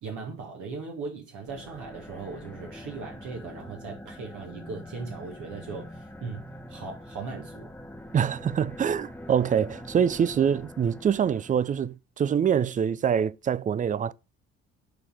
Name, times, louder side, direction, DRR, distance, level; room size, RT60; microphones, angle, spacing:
voice 1, 0.0-7.7, right 4 dB, 60° right, 1.7 m, -38 dB
sound 1, 1.4-11.9, left 1 dB, 5° left, 1.0 m, -44 dB
voice 2, 8.1-14.1, right 8 dB, 25° right, 0.4 m, -25 dB
6.7 x 4.2 x 4.9 m
hypercardioid pair, 50°, 35 cm